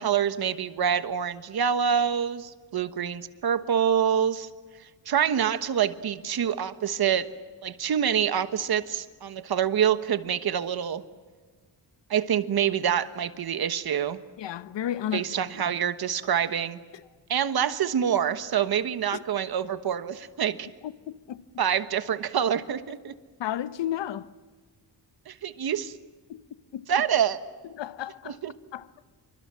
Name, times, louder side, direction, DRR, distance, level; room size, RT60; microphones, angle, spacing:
voice 1, 0.0-4.5 4.8-7.3 7.6-11.0 12.1-14.2 15.1-16.8 17.3-20.7 21.6-23.1 25.3-26.0 26.9-27.4 28.2-28.5, right 8 dB, 60° right, 1.3 m, -26 dB
voice 2, 14.4-15.4 16.9-17.0 19.1-19.2 20.8-21.4 23.4-24.3 26.3-26.4 26.7-26.9 27.7-28.4 28.7-28.9, left 11 dB, 75° left, 1.0 m, -33 dB
27.5 x 24.5 x 7.6 m
wide cardioid pair, 150°, 43 cm